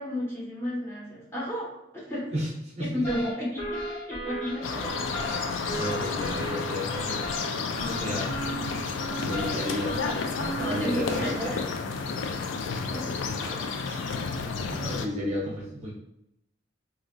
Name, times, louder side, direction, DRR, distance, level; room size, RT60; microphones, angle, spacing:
voice 1, 0.0-2.3 2.8-5.5 10.6-11.6 12.9-13.6, equal, 10° left, -6 dB, 1.2 m, -33 dB
sound 1, 3.0-11.4, equal, 50° left, 1.0 m, -36 dB
sound 2, 4.6-15.1, left 4 dB, 75° left, 0.4 m, -31 dB
voice 2, 5.7-7.2 7.8-8.4 9.2-11.5 13.8-14.0 14.6-15.9, left 1 dB, 35° right, -3 dB, 0.6 m, -33 dB
3.9 x 2.9 x 2.5 m, 0.81 s
head